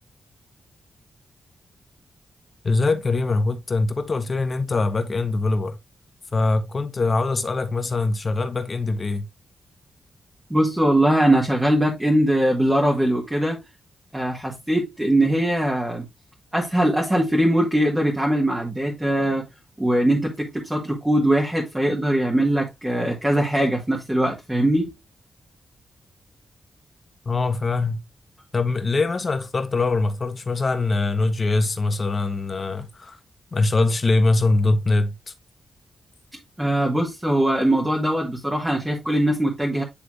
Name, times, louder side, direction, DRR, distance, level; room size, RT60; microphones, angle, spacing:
voice 1, 2.6-5.8 6.3-9.2 27.2-28.0 28.5-33.2 33.5-35.1, left 3 dB, 35° left, 1.1 m, -22 dB
voice 2, 10.5-13.6 14.1-16.1 16.5-19.4 19.8-24.9 36.6-39.8, right 1 dB, 10° right, 1.7 m, -21 dB
10.0 x 3.4 x 3.1 m
wide cardioid pair, 115°, 0 cm